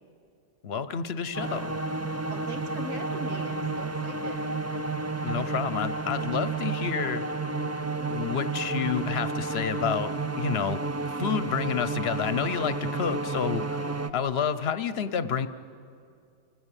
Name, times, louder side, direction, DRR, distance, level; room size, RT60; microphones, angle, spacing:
voice 1, 0.6-1.7 5.2-7.2 8.1-10.8 11.1-15.5, left 7 dB, 55° left, 13 dB, 1.1 m, -29 dB
sound 1, 1.3-14.1, right 3 dB, 20° right, 0.5 m, -31 dB
voice 2, 2.0-4.4, right 1 dB, 75° right, 4 dB, 2.3 m, -41 dB
29.0 x 19.0 x 9.0 m, 2.4 s
omnidirectional pair, 1.3 m